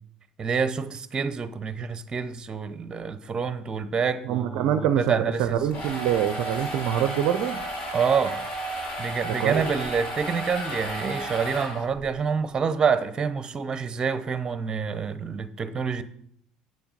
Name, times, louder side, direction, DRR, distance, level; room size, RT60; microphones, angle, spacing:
voice 1, 0.4-5.6 7.9-8.4 9.0-16.0, right 6 dB, 30° right, 0.8 m, -27 dB
voice 2, 4.2-7.7 9.4-9.7, right 10 dB, 55° right, 0.5 m, -25 dB
sound 1, 5.4-12.1, right 1 dB, 50° left, 3.8 m, -33 dB
8.2 x 7.0 x 5.1 m
figure-of-eight pair, 60°, 3 cm